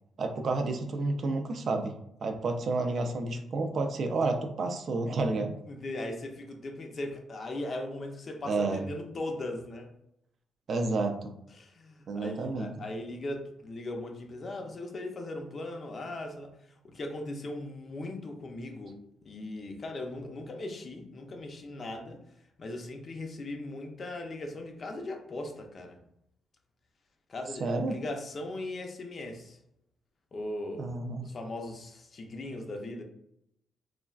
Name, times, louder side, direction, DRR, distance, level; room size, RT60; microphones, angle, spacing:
voice 1, 0.2-1.9 2.2-5.6 8.5-8.9 10.7-11.4 12.1-12.7 27.6-28.0 30.8-31.3, right 3 dB, 55° right, 4 dB, 0.4 m, -30 dB
voice 2, 5.7-9.9 11.6-16.5 16.8-19.0 19.2-22.2 22.6-26.0 27.3-29.6 30.3-33.0, left 2 dB, 40° left, 3 dB, 0.5 m, -38 dB
3.1 x 2.2 x 2.3 m, 0.78 s
cardioid pair, 90°, 0 cm